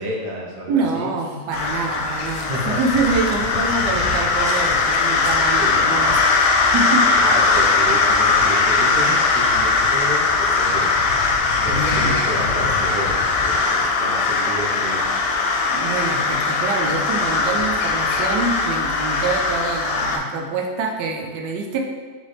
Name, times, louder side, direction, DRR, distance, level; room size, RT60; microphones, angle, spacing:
voice 1, 0.0-1.1 2.4-2.8 5.6-5.8 7.1-10.9 11.6-15.2, right 1 dB, 55° right, -3 dB, 0.4 m, -30 dB
voice 2, 0.7-7.0 11.6-12.2 15.7-21.8, right 3 dB, 85° right, 2 dB, 1.2 m, -25 dB
sound 1, 1.5-20.2, left 4 dB, 80° left, 1.2 m, -20 dB
4.0 x 3.1 x 3.3 m, 1.5 s
omnidirectional pair, 1.8 m